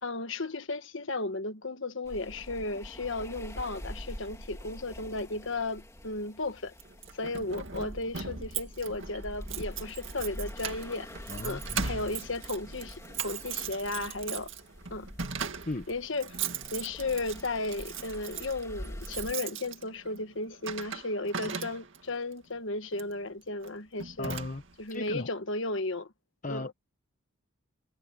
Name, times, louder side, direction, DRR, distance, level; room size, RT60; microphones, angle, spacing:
voice 1, 0.0-6.7 7.1-11.1 11.4-14.5 14.9-15.1 15.9-16.4 16.7-24.3 24.8-26.1 26.5-26.7, left 2 dB, 60° left, 1.4 m, -34 dB
sound 1, 2.0-19.3, equal, 15° left, 2.6 m, -45 dB
Keys jangling, 6.8-22.1 22.9-23.2 23.6-23.7 24.0-24.9, right 6 dB, 60° right, 2.2 m, -39 dB
voice 2, 11.3-11.9 15.7-15.9 24.2-24.6 24.9-25.3 26.4-26.7, left 2 dB, 35° left, 0.8 m, -36 dB
head